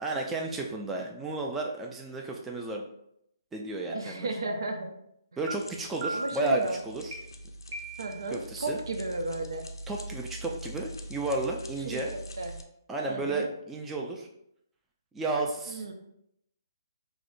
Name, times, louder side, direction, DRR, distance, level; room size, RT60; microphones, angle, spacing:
voice 1, 0.0-2.8 3.5-4.3 5.4-7.2 8.3-8.8 9.9-12.1 12.9-14.3 15.1-15.9, right 2 dB, 10° right, 0 dB, 0.3 m, -32 dB
sound 1, 3.9-4.0 4.5-4.8 5.5-5.6 6.0-6.5 7.1-7.2 7.7-8.3, right 1 dB, 45° right, 0.8 m, -37 dB
voice 2, 3.9-5.0 6.1-6.8 8.0-9.7 11.9-12.5 13.1-13.5 15.7-15.9, right 2 dB, 75° right, 4 dB, 0.6 m, -34 dB
sound 2, 5.5-12.6, right 1 dB, 85° left, 0.5 m, -43 dB
4.7 x 2.0 x 2.6 m, 0.76 s
hypercardioid pair, 145°, 2 cm